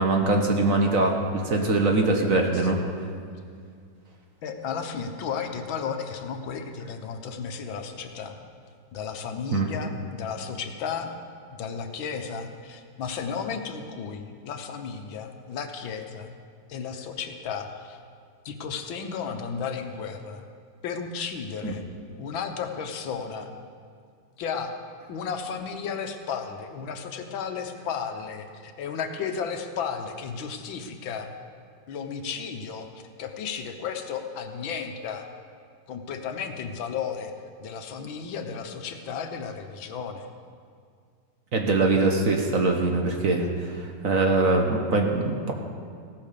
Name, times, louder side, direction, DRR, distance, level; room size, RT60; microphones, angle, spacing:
voice 1, 0.0-2.8 9.5-9.7 21.6-21.7 41.5-45.5, right 2 dB, 50° right, 2 dB, 1.5 m, -23 dB
voice 2, 4.4-8.4 8.9-11.1 11.5-16.3 16.7-18.0 18.5-20.4 20.8-21.8 22.2-23.5 24.4-24.8 25.1-31.3 31.9-35.3 35.9-37.3 37.6-40.3, left 6 dB, 80° left, 6 dB, 1.7 m, -34 dB
16.0 x 9.0 x 6.7 m, 2.2 s
omnidirectional pair, 2.1 m